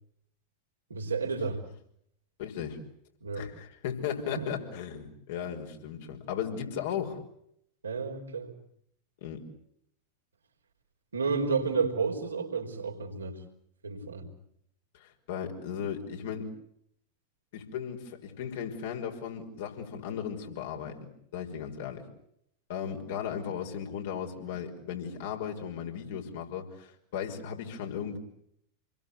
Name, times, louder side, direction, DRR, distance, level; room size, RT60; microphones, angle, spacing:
voice 1, 0.9-1.6 3.2-3.5 4.4-4.5 7.8-8.5 11.1-13.4 13.8-14.3, right 5 dB, 75° right, 2 dB, 4.5 m, -31 dB
voice 2, 2.4-2.8 3.3-7.2 9.2-9.4 14.9-16.5 17.5-21.0 21.3-22.1 22.7-28.2, left 8 dB, 55° left, 3 dB, 5.5 m, -36 dB
29.0 x 22.0 x 8.5 m, 0.74 s
figure-of-eight pair, 90°, 0 cm